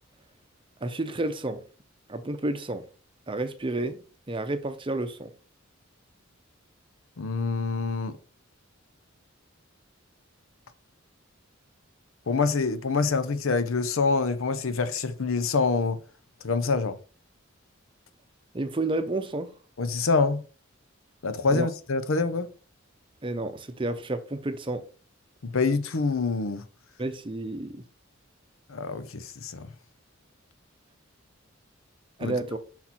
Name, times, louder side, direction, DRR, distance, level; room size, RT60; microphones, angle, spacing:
voice 1, 0.8-1.6 2.1-2.8 3.3-4.0 4.3-5.3 18.5-19.5 21.5-21.7 23.2-24.8 27.0-27.8 32.2-32.6, right 2 dB, 25° right, 0.7 m, -30 dB
voice 2, 7.2-8.2 12.3-16.0 16.4-17.0 19.8-20.4 21.2-22.5 25.4-26.6 28.7-29.7 32.2-32.4, left 4 dB, 80° left, 0.7 m, -26 dB
5.8 x 4.3 x 4.3 m
head